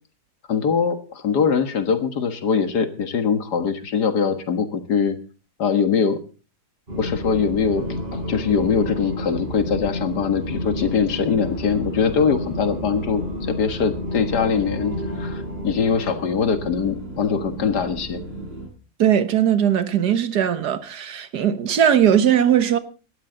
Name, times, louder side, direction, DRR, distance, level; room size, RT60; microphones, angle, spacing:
voice 1, 0.5-5.2 5.6-6.2 7.0-7.8 8.1-18.2, left 6 dB, 90° left, 2.1 m, -22 dB
sound 1, 6.9-18.7, equal, 35° right, 7.4 m, -31 dB
voice 2, 19.0-22.8, right 9 dB, 80° right, 1.8 m, -19 dB
18.5 x 12.5 x 3.9 m
omnidirectional pair, 1.7 m